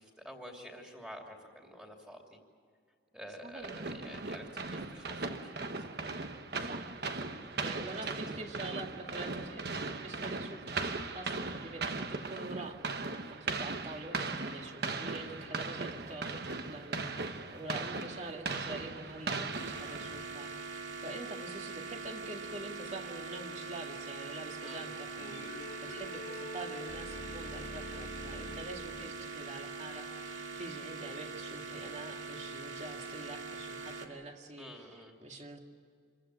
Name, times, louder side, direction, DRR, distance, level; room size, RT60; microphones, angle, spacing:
voice 1, 0.0-2.4 3.1-6.0 8.3-8.4 15.0-15.3 24.6-24.9 34.6-35.1, equal, 5° right, 1 dB, 2.9 m, -49 dB
voice 2, 3.4-3.7 6.7-6.9 7.6-9.7 10.0-12.8 13.0-25.4 25.8-35.6, right 2 dB, 35° right, 2 dB, 2.1 m, -45 dB
sound 1, 3.6-20.4, right 3 dB, 55° right, 1.3 m, -38 dB
sound 2, 19.5-34.1, right 4 dB, 85° right, 2.1 m, -43 dB
sound 3, 22.0-23.3 25.2-29.1, left 1 dB, 85° left, 2.9 m, -46 dB
26.5 x 15.5 x 10.0 m, 2.1 s
head